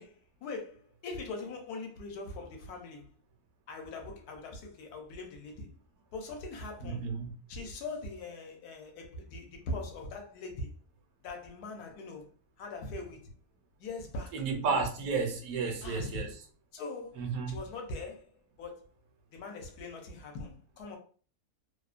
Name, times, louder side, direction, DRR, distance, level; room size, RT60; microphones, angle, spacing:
voice 1, 0.0-3.1 3.7-5.7 6.1-7.1 7.5-10.7 11.2-12.3 12.6-13.2 13.8-14.3 15.6-16.3 16.7-18.3 18.6-18.9 19.3-21.0, left 2 dB, 75° left, 1.2 m, -41 dB
voice 2, 6.8-7.3 14.3-16.3 17.2-17.6, right 5 dB, 70° right, 1.0 m, -32 dB
2.8 x 2.1 x 2.4 m
omnidirectional pair, 1.6 m